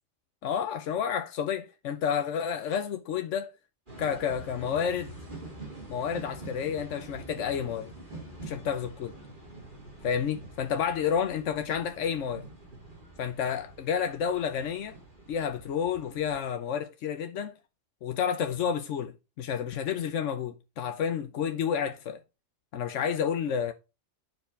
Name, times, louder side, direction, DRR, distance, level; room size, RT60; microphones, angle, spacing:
voice 1, 0.4-3.5 4.0-5.1 5.9-7.9 8.4-9.1 10.0-12.4 13.2-15.0 15.3-17.6 18.0-22.2 22.7-23.7, left 7 dB, 90° left, 1.1 m, -30 dB
sound 1, 3.9-16.4, right 2 dB, 45° right, 4.6 m, -46 dB
10.5 x 4.9 x 5.2 m
omnidirectional pair, 1.2 m